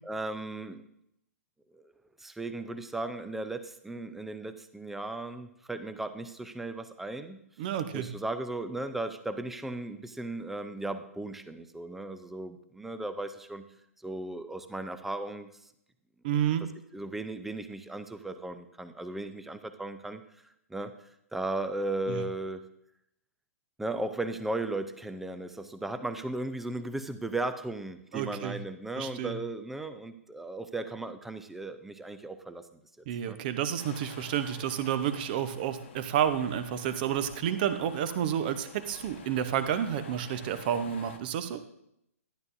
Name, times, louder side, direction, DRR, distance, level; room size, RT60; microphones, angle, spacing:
voice 1, 0.0-0.8 1.7-1.9 2.2-7.4 7.9-13.7 14.0-15.5 16.9-20.2 20.7-20.9 21.3-22.6 23.8-32.6 33.3-33.4, right 2 dB, 5° right, 10 dB, 0.5 m, -36 dB
voice 2, 7.6-8.1 16.2-16.6 22.1-22.3 28.1-28.6 28.9-29.4 33.1-41.6, right 9 dB, 35° right, 11 dB, 0.8 m, -30 dB
sound 1, 33.8-41.2, left 6 dB, 45° left, 1.0 m, -49 dB
12.5 x 11.0 x 2.6 m, 0.75 s
figure-of-eight pair, 120°, 8 cm